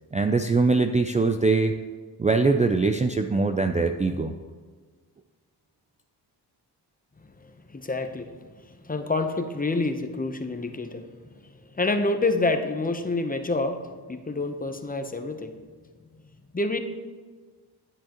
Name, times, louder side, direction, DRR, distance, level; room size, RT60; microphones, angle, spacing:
voice 1, 0.1-1.8 2.2-4.3, right 3 dB, 20° right, 6 dB, 0.4 m, -22 dB
voice 2, 7.7-8.4 8.7-11.0 11.7-15.6 16.5-16.8, left 2 dB, 20° left, 7 dB, 0.8 m, -27 dB
10.0 x 9.8 x 3.0 m, 1.5 s
cardioid pair, 90°, 41 cm